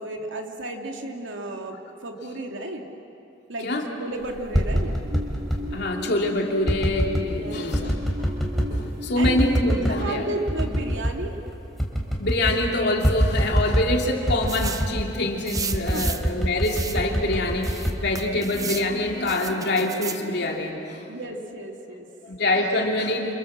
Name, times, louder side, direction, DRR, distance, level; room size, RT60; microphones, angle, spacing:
voice 1, 0.0-2.9 3.5-5.0 7.3-8.1 9.2-11.4 15.9-16.2 18.3-18.5 21.1-22.1, right 2 dB, 85° right, 2 dB, 2.6 m, -33 dB
sound 1, 4.3-5.6 6.6-7.3 7.7-8.8 9.2-10.0 10.5-11.2 11.5-11.6 11.8-12.6 13.0-13.9 14.3-15.0 15.5-18.7 19.1-19.5, equal, ahead, 3.7 m, -25 dB
sound 2, 5.0-10.9, left 2 dB, 55° right, 2.0 m, -36 dB
voice 2, 5.7-7.9 8.7-10.2 12.2-21.0 22.2-23.3, left 2 dB, 60° left, 0 dB, 3.2 m, -25 dB
sound 3, 14.5-14.9 15.5-16.3 16.6-17.0 17.6-18.9 19.3-20.2, right 5 dB, 20° right, 0.9 m, -33 dB
28.5 x 27.5 x 7.5 m, 2.9 s
head